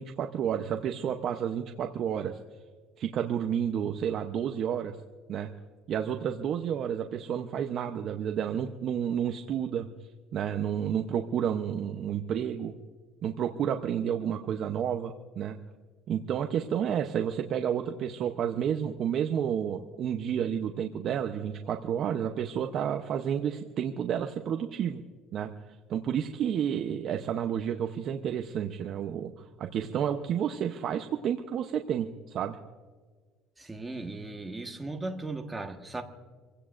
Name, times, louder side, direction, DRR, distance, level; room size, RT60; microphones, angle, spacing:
voice 1, 0.0-2.4 3.0-5.0 5.3-5.5 5.9-9.9 10.3-12.7 13.2-15.6 16.1-25.0 25.3-25.5 25.9-29.3 29.6-32.6, right 8 dB, 45° right, 5 dB, 0.8 m, -30 dB
voice 2, 33.6-36.0, right 2 dB, 10° right, 3 dB, 1.4 m, -37 dB
27.0 x 16.5 x 2.6 m, 1.5 s
cardioid pair, 145°, 0 cm